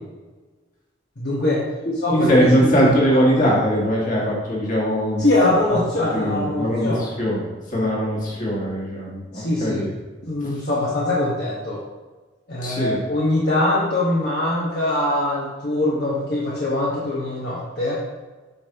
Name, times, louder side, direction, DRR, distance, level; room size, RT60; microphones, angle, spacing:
voice 1, 1.2-1.6 2.0-2.3 2.6-3.2 5.2-7.1 9.3-9.9 10.2-11.8 12.5-18.0, left 1 dB, 60° left, -7 dB, 1.3 m, -22 dB
voice 2, 2.1-5.2 6.1-9.9 10.4-10.5 12.6-13.0, equal, 45° left, -4 dB, 1.9 m, -21 dB
8.4 x 5.3 x 2.9 m, 1.3 s
head